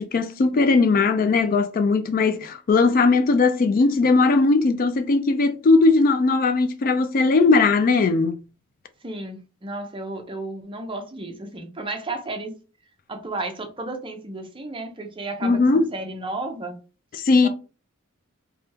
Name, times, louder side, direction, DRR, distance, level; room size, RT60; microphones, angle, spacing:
voice 1, 0.0-8.4 15.4-15.8 17.1-17.5, left 3 dB, 40° left, 0.3 m, -19 dB
voice 2, 9.0-12.5 13.1-16.8 17.4-17.5, right 2 dB, 25° right, 0.6 m, -33 dB
3.4 x 2.3 x 2.8 m
head